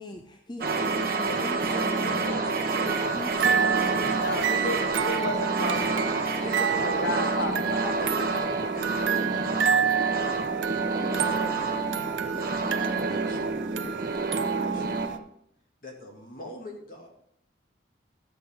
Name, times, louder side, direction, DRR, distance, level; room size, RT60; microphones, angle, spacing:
voice 1, 0.0-2.4 3.1-4.2, left 1 dB, 25° left, 4 dB, 0.6 m, -40 dB
sound 1, 0.6-15.1, right 3 dB, 50° right, 1.5 m, -28 dB
voice 2, 1.0-3.7 6.4-7.6 8.0-10.4 11.1-11.8 12.3-14.9 15.8-17.1, left 1 dB, 50° left, 0 dB, 2.2 m, -42 dB
sound 2, 2.9-15.2, right 8 dB, 85° right, 0.6 m, -30 dB
voice 3, 4.1-6.3 6.8-8.0, left 2 dB, 70° left, 5 dB, 0.8 m, -33 dB
11.5 x 7.8 x 3.7 m, 0.69 s
head